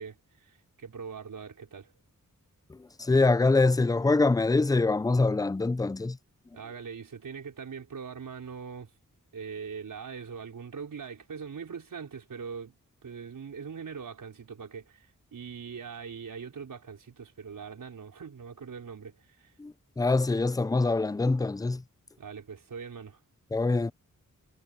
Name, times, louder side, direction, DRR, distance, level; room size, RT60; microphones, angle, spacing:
voice 1, 0.0-1.9 6.5-8.9 9.3-12.8 13.0-19.5 22.2-23.2, right 6 dB, 85° right, 5.2 m, -42 dB
voice 2, 2.7-6.2 19.6-21.8 23.5-23.9, left 3 dB, 10° left, 0.4 m, -24 dB
wide cardioid pair, 105°, 32 cm